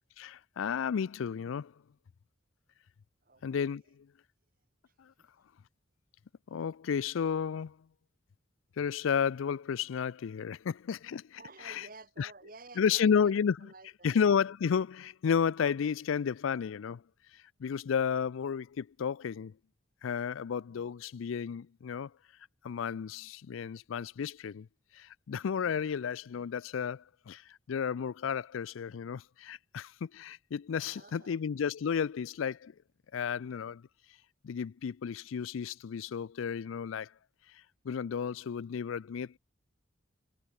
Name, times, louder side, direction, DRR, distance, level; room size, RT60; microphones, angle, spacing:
voice 1, 0.2-1.7 3.4-4.1 5.0-5.1 6.5-7.8 8.8-11.4 11.7-11.9 12.2-12.3 12.8-13.6 14.0-17.0 17.6-19.5 20.0-22.1 22.6-24.7 24.9-27.4 27.7-32.7 33.1-33.9 34.4-37.1 37.8-39.4, left 7 dB, 85° left, 0.4 m, -32 dB
voice 2, 4.8-5.3 11.4-14.2 30.8-31.4, right 3 dB, 45° right, 4.7 m, -52 dB
head